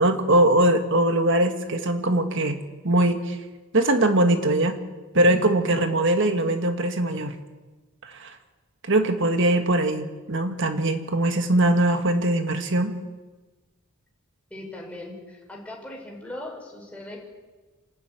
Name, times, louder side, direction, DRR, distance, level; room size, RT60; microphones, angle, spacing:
voice 1, 0.0-3.4 3.7-4.8 5.1-7.3 8.0-8.3 8.9-13.0, right 1 dB, 55° right, 7 dB, 1.9 m, -21 dB
voice 2, 14.5-17.2, left 1 dB, 5° left, -2 dB, 5.3 m, -39 dB
27.0 x 13.0 x 9.2 m, 1.3 s
head